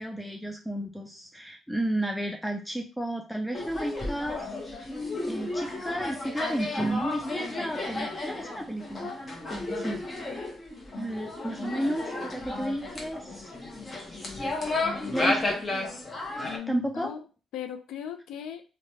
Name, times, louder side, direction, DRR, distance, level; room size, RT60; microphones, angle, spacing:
voice 1, 0.0-4.5 5.3-9.1 9.5-10.0 11.0-13.5 15.1-15.6 16.7-17.1, right 1 dB, 5° left, 3 dB, 0.3 m, -32 dB
sound 1, 3.5-16.6, left 2 dB, 30° left, 0.8 m, -33 dB
voice 2, 14.8-15.3 16.4-17.2 17.5-18.6, left 8 dB, 85° left, 8 dB, 0.4 m, -38 dB
3.1 x 2.1 x 2.7 m, 0.33 s
cardioid pair, 90°, 0 cm